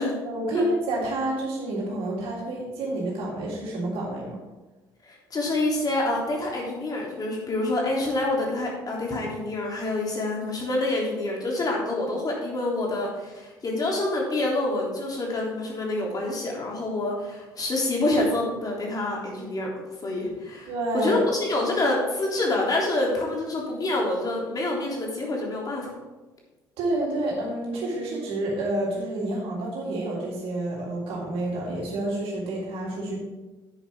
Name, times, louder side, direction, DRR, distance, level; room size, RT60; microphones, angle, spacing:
voice 1, 0.3-4.4 20.7-21.2 26.8-33.2, right 1 dB, 60° right, -4 dB, 3.6 m, -29 dB
voice 2, 5.0-19.7 20.0-25.9, left 2 dB, 35° left, -2 dB, 3.3 m, -27 dB
10.5 x 9.3 x 3.7 m, 1.1 s
figure-of-eight pair, 50°, 11 cm